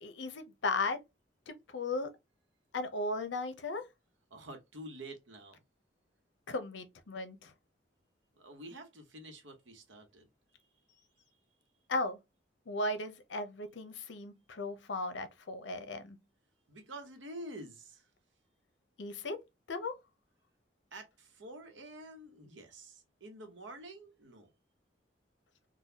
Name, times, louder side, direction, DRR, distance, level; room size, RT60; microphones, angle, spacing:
voice 1, 0.0-1.0 1.5-2.1 2.7-3.8 6.5-7.5 11.9-12.2 12.7-16.2 19.0-19.4 19.7-19.9, left 2 dB, 75° left, 0.7 m, -36 dB
voice 2, 4.3-5.6 8.4-10.3 16.7-18.1 20.9-24.5, right 1 dB, 90° right, 1.0 m, -48 dB
3.9 x 2.3 x 2.8 m
head